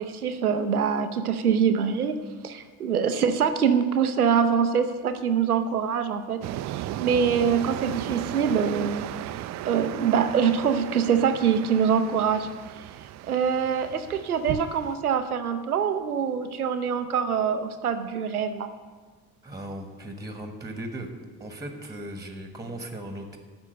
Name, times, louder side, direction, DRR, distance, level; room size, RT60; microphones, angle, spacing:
voice 1, 0.0-2.2 2.4-6.4 6.7-9.1 9.7-12.5 13.3-18.7, right 7 dB, 90° right, 9 dB, 0.6 m, -24 dB
sound 1, 6.4-15.0, right 13 dB, 40° right, 0.4 m, -36 dB
voice 2, 19.4-21.1 21.4-23.4, right 1 dB, 10° right, 5 dB, 1.4 m, -37 dB
12.0 x 4.4 x 7.7 m, 1.4 s
figure-of-eight pair, 45°, 43 cm